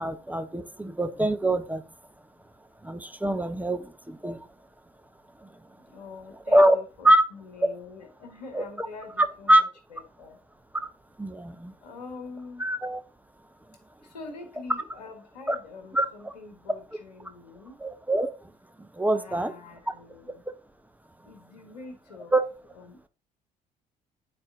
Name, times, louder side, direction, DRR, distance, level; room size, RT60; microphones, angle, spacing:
voice 1, 0.0-1.8 2.8-4.4 6.5-6.8 7.0-7.2 8.5-8.9 9.2-9.6 10.7-10.9 11.2-11.7 12.6-13.0 15.5-15.6 15.9-16.3 17.8-18.3 19.0-19.5 22.3-22.5, right 1 dB, 10° right, 9 dB, 0.7 m, -24 dB
voice 2, 5.9-10.4 11.8-12.6 14.0-17.8 19.2-20.4 21.3-22.3 22.7-23.1, left 3 dB, 80° left, 6 dB, 1.3 m, -44 dB
9.3 x 4.1 x 3.7 m, 0.36 s
figure-of-eight pair, 55°, 21 cm